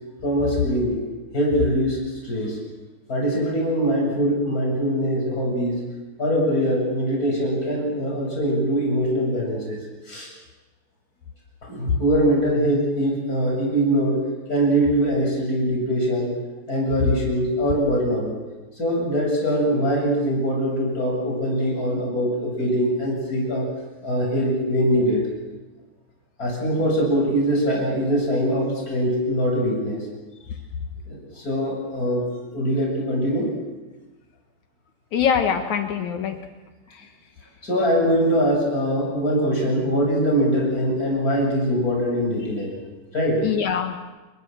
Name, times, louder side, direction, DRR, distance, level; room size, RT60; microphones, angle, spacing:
voice 1, 0.2-1.0 1.3-2.0 2.2-2.6 3.1-5.8 6.2-9.8 10.1-10.3 11.6-14.2 14.5-16.3 16.7-18.3 18.8-23.7 24.0-25.3 26.4-30.0 31.1-32.2 32.5-33.5 37.6-42.7 43.1-43.4, equal, 15° left, -1 dB, 8.1 m, -22 dB
voice 2, 35.1-36.4 36.9-37.1 43.4-44.0, left 8 dB, 80° left, 6 dB, 1.6 m, -23 dB
30.0 x 21.0 x 7.6 m, 1.2 s
omnidirectional pair, 5.4 m